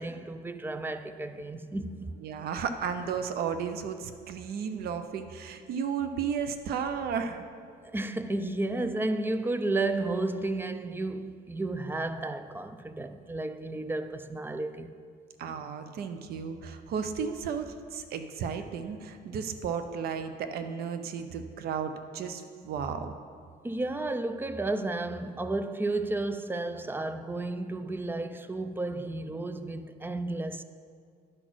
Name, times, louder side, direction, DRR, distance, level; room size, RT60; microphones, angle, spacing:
voice 1, 0.0-2.2 7.8-15.0 23.6-30.6, right 2 dB, 10° right, 0.4 m, -32 dB
voice 2, 2.2-7.4 15.4-23.1, right 6 dB, 65° right, 0.7 m, -34 dB
10.0 x 4.1 x 6.2 m
cardioid pair, 110°, 17 cm